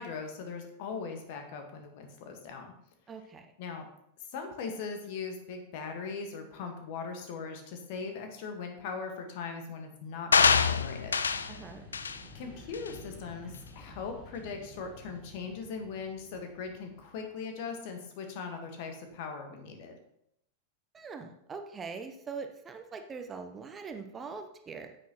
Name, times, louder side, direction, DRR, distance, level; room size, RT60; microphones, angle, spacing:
voice 1, 0.0-2.7 3.6-3.8 4.3-11.2 12.3-20.0, left 5 dB, 50° left, 5 dB, 1.6 m, -40 dB
voice 2, 3.1-3.5 11.5-11.8 20.9-25.0, right 5 dB, 20° right, 6 dB, 0.8 m, -42 dB
sound 1, 10.3-11.5 11.9-12.2 12.7-12.9, left 5 dB, 70° left, 0.4 m, -25 dB
sound 2, 10.3-17.7, left 1 dB, 15° left, 3.8 m, -51 dB
9.3 x 8.5 x 3.0 m, 0.75 s
figure-of-eight pair, 90°, 0 cm